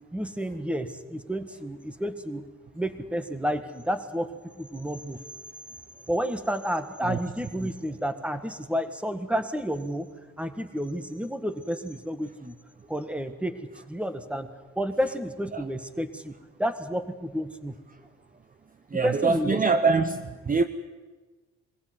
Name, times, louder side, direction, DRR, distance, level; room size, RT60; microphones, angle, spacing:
voice 1, 0.1-2.5 2.7-4.3 4.6-5.2 6.1-10.1 10.4-12.5 12.9-14.5 14.7-16.3 16.6-17.8 19.0-19.6, equal, 5° right, 10 dB, 1.7 m, -30 dB
voice 2, 18.9-20.6, right 4 dB, 30° right, 10 dB, 0.9 m, -24 dB
22.5 x 15.5 x 9.6 m, 1.3 s
cardioid pair, 90°, 30 cm